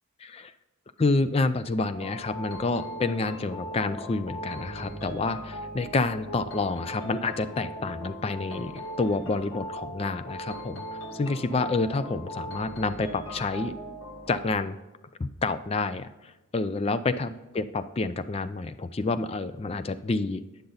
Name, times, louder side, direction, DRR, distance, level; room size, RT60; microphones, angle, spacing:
voice 1, 0.2-0.5 1.0-13.7 14.3-14.8 15.2-20.4, left 3 dB, 30° left, 11 dB, 0.3 m, -28 dB
sound 1, 1.9-14.5, equal, 65° left, 1.6 m, -39 dB
10.0 x 6.7 x 4.0 m, 1.1 s
head